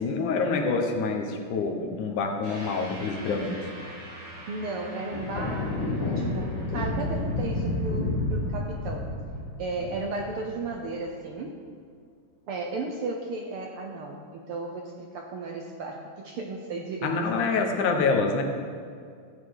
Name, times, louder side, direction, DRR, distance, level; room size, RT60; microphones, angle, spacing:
voice 1, 0.0-3.7 17.0-18.4, left 4 dB, 80° left, 3 dB, 2.6 m, -26 dB
sound 1, 2.4-11.1, right 1 dB, 10° right, 2.6 m, -46 dB
voice 2, 4.5-9.1 9.6-11.6 12.5-17.1 17.4-17.7, right 3 dB, 70° right, 1 dB, 1.4 m, -35 dB
sound 2, 5.1-10.7, left 2 dB, 55° left, 1.3 m, -30 dB
14.5 x 8.7 x 4.8 m, 2.2 s
omnidirectional pair, 3.4 m